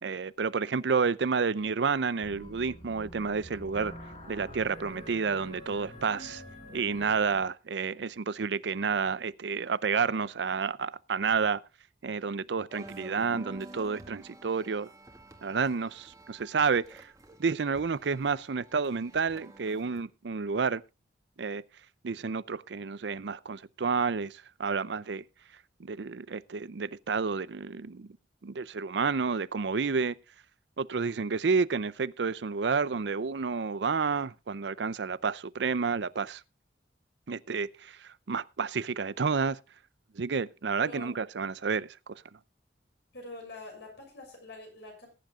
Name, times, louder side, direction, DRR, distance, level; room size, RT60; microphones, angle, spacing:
voice 1, 0.0-3.9 4.3-6.4 6.7-11.6 12.0-14.9 15.4-17.1 17.4-20.8 21.4-21.6 22.0-25.2 25.8-28.1 28.4-30.2 30.8-36.4 37.3-39.6 40.1-42.2, right 5 dB, 70° right, 0.5 m, -30 dB
sound 1, 2.2-7.4, equal, 35° left, 6.5 m, -46 dB
sound 2, 12.7-20.0, right 1 dB, 20° right, 1.9 m, -50 dB
voice 2, 40.8-41.2 43.1-45.1, left 2 dB, 70° left, 6.4 m, -45 dB
20.5 x 10.5 x 2.4 m
head